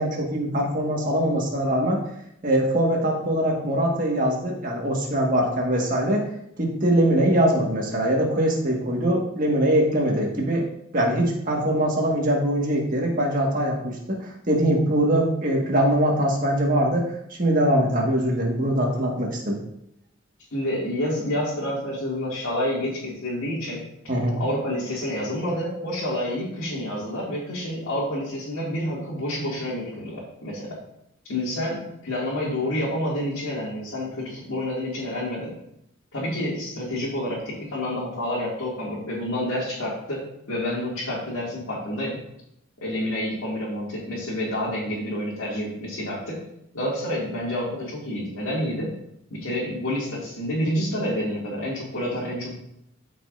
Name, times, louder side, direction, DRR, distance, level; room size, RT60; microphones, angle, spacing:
voice 1, 0.0-2.0 2.4-6.2 6.6-10.6 10.9-19.6 24.1-24.4, right 1 dB, 40° right, -1 dB, 1.7 m, -22 dB
voice 2, 20.5-23.8 24.4-30.8 31.3-35.5 36.1-40.2 40.5-42.2 42.8-46.4 46.7-48.9 49.3-52.5, left 1 dB, 75° left, -7 dB, 2.3 m, -28 dB
13.5 x 5.3 x 2.6 m, 0.78 s
head